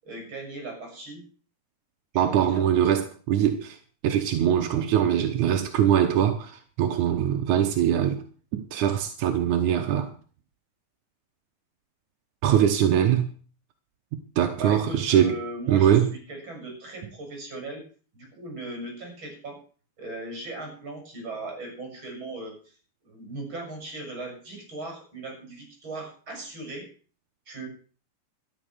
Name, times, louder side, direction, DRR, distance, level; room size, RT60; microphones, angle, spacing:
voice 1, 0.0-1.2 2.1-2.7 14.6-15.9 16.3-17.8 18.1-19.6 20.0-22.5 23.0-26.9 27.5-27.7, right 2 dB, 30° right, 7.0 m, -38 dB
voice 2, 2.2-3.8 4.0-8.2 8.5-10.1 12.4-13.3 14.4-15.4 15.7-16.1, right 10 dB, 70° right, 1.9 m, -22 dB
13.0 x 10.5 x 6.4 m
omnidirectional pair, 4.8 m